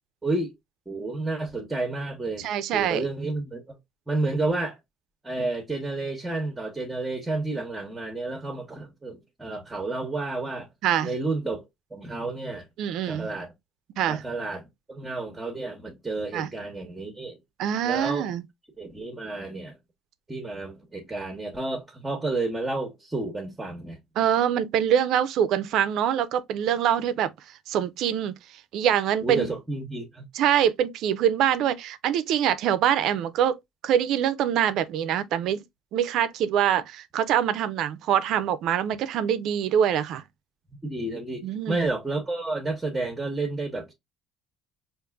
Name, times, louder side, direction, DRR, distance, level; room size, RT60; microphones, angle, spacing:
voice 1, 0.2-0.5 0.9-2.5 2.7-3.8 4.1-4.8 5.2-10.7 11.0-11.7 11.9-12.6 13.1-13.5 14.1-17.4 17.9-18.3 18.8-19.8 20.3-24.0 29.2-30.2 40.8-43.9, right 2 dB, 10° right, 0.9 m, -31 dB
voice 2, 2.4-3.1 10.8-11.1 12.8-13.3 14.0-14.2 16.3-16.5 17.6-18.4 24.2-27.3 27.7-29.5 30.3-35.6 35.9-40.2 41.4-41.9, right 9 dB, 65° right, 0.5 m, -24 dB
5.1 x 2.5 x 2.3 m
cardioid pair, 125°, 0 cm